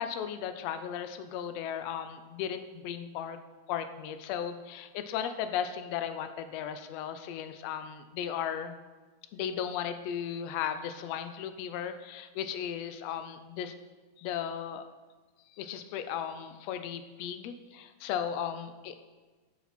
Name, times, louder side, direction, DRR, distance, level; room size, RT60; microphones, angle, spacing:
voice 1, 0.0-3.4 3.7-8.7 9.3-13.7 14.2-14.8 15.5-19.0, left 8 dB, 75° left, 9 dB, 1.6 m, -36 dB
10.0 x 7.3 x 4.3 m, 1.3 s
omnidirectional pair, 3.5 m